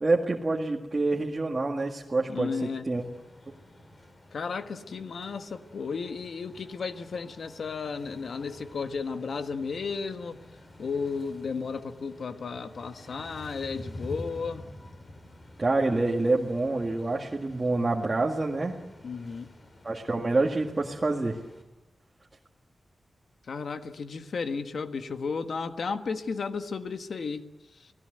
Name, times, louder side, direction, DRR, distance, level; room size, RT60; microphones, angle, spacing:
voice 1, 0.0-3.0 15.6-18.8 19.8-21.4, right 2 dB, 25° right, -1 dB, 1.8 m, -27 dB
voice 2, 2.3-2.9 4.3-10.4 10.8-14.7 19.0-19.5 23.5-27.5 27.8-27.9, left 5 dB, 65° left, 8 dB, 1.5 m, -34 dB
sound 1, 2.9-21.6, left 1 dB, 35° left, 5.2 m, -49 dB
29.5 x 18.5 x 8.0 m, 1.1 s
wide cardioid pair, 140°, 0 cm